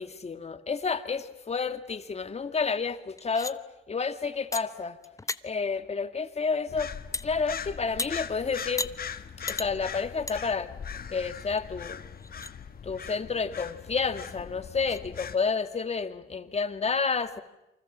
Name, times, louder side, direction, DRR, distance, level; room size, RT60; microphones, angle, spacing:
voice 1, 0.0-3.6 3.9-5.0 5.4-6.9 7.2-8.9 9.5-10.7 11.1-12.0 12.8-17.4, left 5 dB, 30° left, 9 dB, 2.0 m, -30 dB
sound 1, 3.2-3.5 4.5-4.6 5.0-5.4 7.1-7.3 8.0-8.1 8.8-8.9 9.5-9.7 10.3-10.4 10.8-10.9 11.6-11.7 12.2-12.5 14.2-14.3 14.8-15.0, left 3 dB, 15° left, 0.9 m, -34 dB
sound 2, 6.7-15.4, left 7 dB, 50° left, 1.5 m, -40 dB
28.5 x 24.5 x 7.4 m, 0.93 s
cardioid pair, 90°, 20 cm